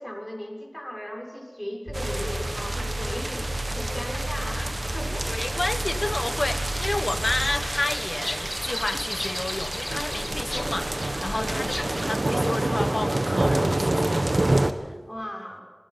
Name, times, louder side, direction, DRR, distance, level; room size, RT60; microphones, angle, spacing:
voice 1, 0.0-5.3 11.3-11.6 15.1-15.6, equal, 15° left, 1 dB, 6.2 m, -36 dB
sound 1, 1.9-7.6, right 1 dB, 35° right, 5.9 m, -32 dB
sound 2, 1.9-14.7, right 2 dB, 60° right, 1.4 m, -28 dB
voice 2, 5.3-14.5, left 2 dB, 70° left, 10 dB, 1.3 m, -31 dB
sound 3, 6.6-12.2, left 1 dB, 35° left, 1.4 m, -35 dB
25.5 x 20.5 x 5.9 m, 1.3 s
wide cardioid pair, 40°, 0 cm